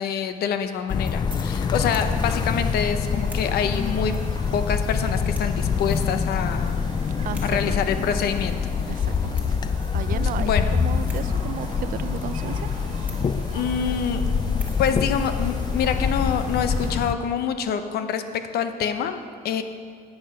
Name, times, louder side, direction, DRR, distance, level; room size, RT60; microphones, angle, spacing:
voice 1, 0.0-4.1 4.5-6.8 7.4-8.9 10.4-10.7 13.5-14.2 14.8-19.6, left 7 dB, 70° left, 9 dB, 0.8 m, -26 dB
sound 1, 0.6-17.5, right 2 dB, 10° right, 1.7 m, -51 dB
sound 2, 0.9-17.1, left 6 dB, 25° left, 0.4 m, -25 dB
sound 3, 1.4-16.9, right 3 dB, 40° right, 1.7 m, -42 dB
voice 2, 7.2-7.8 8.9-9.6 9.9-12.7, right 10 dB, 55° right, 15 dB, 0.4 m, -34 dB
9.9 x 8.1 x 5.7 m, 2.1 s
cardioid pair, 110°, 17 cm